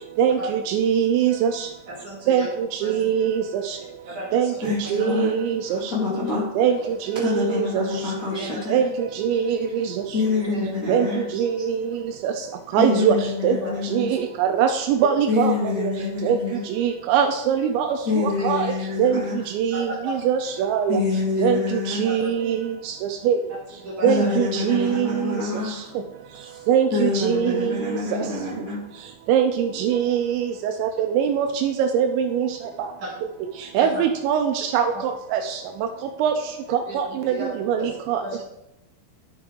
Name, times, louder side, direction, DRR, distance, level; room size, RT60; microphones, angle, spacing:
voice 1, 0.2-1.7 2.3-3.8 4.3-5.9 6.6-6.8 7.1-7.8 8.7-9.9 10.9-12.3 12.7-13.2 13.4-13.6 13.9-15.9 16.2-16.4 16.7-18.7 19.0-19.2 19.5-21.0 21.4-23.0 23.2-23.4 24.0-25.4 25.7-25.8 26.7-28.0 29.3-32.5 32.8-32.9 33.7-35.6 36.2-36.3 36.7-38.2, right 8 dB, 85° right, 5 dB, 2.8 m, -22 dB
voice 2, 1.9-2.5 2.8-3.1 4.1-4.6 5.0-5.1 6.8-6.9 8.3-8.6 10.3-10.7 12.8-12.9 13.6-13.7 15.9-16.0 18.3-18.5 19.7-20.1 21.6-21.7 22.0-22.3 23.8-24.3 28.1-28.2 33.0-33.1 33.8-34.0 34.9-35.0 36.9-37.0 37.3-37.5 37.8-37.9 38.2-38.4, right 1 dB, 55° right, -3 dB, 2.2 m, -34 dB
voice 3, 4.6-5.3 5.7-6.5 7.2-8.8 9.3-9.4 10.1-11.2 11.6-11.7 12.8-14.1 15.3-16.6 18.0-19.7 20.9-22.1 24.0-25.9 26.4-26.6 26.9-28.8, left 4 dB, 70° left, -8 dB, 0.7 m, -26 dB
12.0 x 5.9 x 3.7 m, 0.88 s
omnidirectional pair, 5.3 m